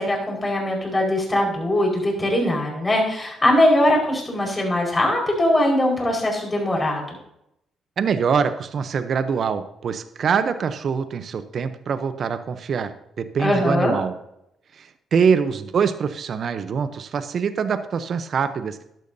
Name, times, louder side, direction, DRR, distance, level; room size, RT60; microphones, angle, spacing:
voice 1, 0.0-7.0 13.4-13.9, left 1 dB, 20° left, -1 dB, 4.8 m, -21 dB
voice 2, 8.0-14.1 14.7-18.8, right 6 dB, 55° right, 11 dB, 0.7 m, -24 dB
12.0 x 12.0 x 2.7 m, 0.78 s
cardioid pair, 90°, 0 cm